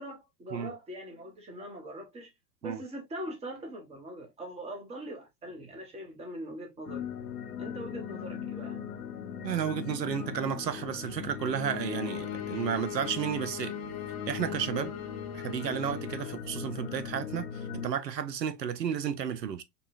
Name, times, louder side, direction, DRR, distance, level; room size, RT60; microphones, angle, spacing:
voice 1, 0.0-2.3 2.6-7.0 7.6-8.8, right 1 dB, 10° right, 1.0 m, -42 dB
sound 1, 6.9-17.9, left 8 dB, 65° left, 0.7 m, -39 dB
voice 2, 9.4-13.7 14.3-14.9 15.3-19.6, right 8 dB, 75° right, 0.7 m, -32 dB
sound 2, 11.5-16.4, left 8 dB, 25° left, 0.7 m, -42 dB
5.4 x 2.3 x 2.6 m
figure-of-eight pair, 100°, 50 cm